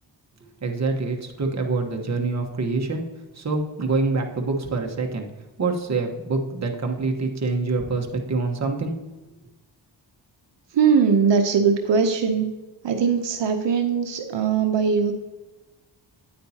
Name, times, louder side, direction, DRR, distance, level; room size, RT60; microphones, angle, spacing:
voice 1, 0.6-3.0 3.3-5.3 5.6-8.9, right 3 dB, 40° right, 2 dB, 1.3 m, -25 dB
voice 2, 10.7-12.5 12.8-15.1, right 6 dB, 75° right, 4 dB, 0.9 m, -20 dB
9.6 x 8.5 x 2.9 m, 1.1 s
wide cardioid pair, 100°, 44 cm